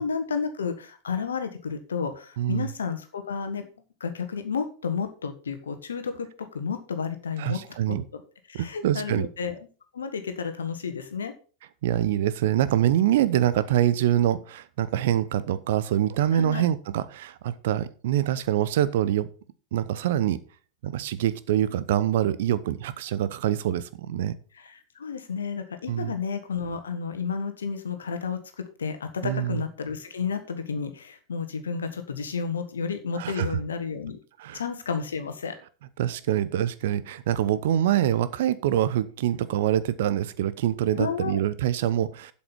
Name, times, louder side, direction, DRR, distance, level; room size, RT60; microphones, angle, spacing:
voice 1, 0.0-3.7 4.0-6.3 6.5-7.6 8.1-8.2 8.5-9.6 9.9-11.3 16.3-16.7 24.6-28.4 28.8-34.2 34.5-35.6 41.0-41.4, left 5 dB, 70° left, 8 dB, 1.5 m, -31 dB
voice 2, 2.4-2.7 7.4-8.0 8.5-9.3 11.8-19.3 19.7-20.4 20.8-24.3 25.9-26.1 29.2-29.6 33.1-33.5 34.4-34.6 36.0-42.3, right 11 dB, 55° right, 16 dB, 0.8 m, -25 dB
7.9 x 7.4 x 5.9 m, 0.38 s
figure-of-eight pair, 90°, 0 cm